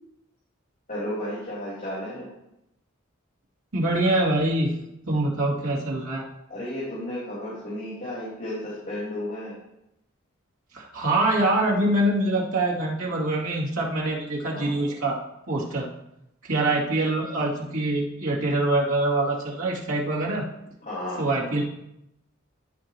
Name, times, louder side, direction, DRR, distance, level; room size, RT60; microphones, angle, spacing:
voice 1, 0.9-2.3 6.5-9.5 14.5-14.9 20.8-21.3, left 1 dB, 35° left, -11 dB, 3.4 m, -33 dB
voice 2, 3.7-4.8 5.0-6.3 10.7-15.2 15.5-15.9 16.4-20.5 21.2-21.6, right 2 dB, 80° right, -5 dB, 2.7 m, -24 dB
14.5 x 6.1 x 3.0 m, 0.84 s
head